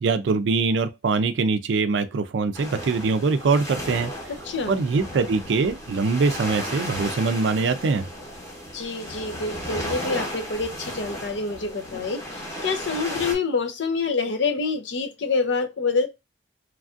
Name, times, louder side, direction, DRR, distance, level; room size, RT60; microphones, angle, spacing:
voice 1, 0.0-4.1 4.7-8.1, right 4 dB, 75° right, 0.4 m, -23 dB
sound 1, 2.5-13.3, equal, 20° left, 1.0 m, -35 dB
voice 2, 4.4-4.8 8.7-16.1, left 4 dB, 75° left, 0.6 m, -27 dB
3.1 x 2.4 x 2.4 m
head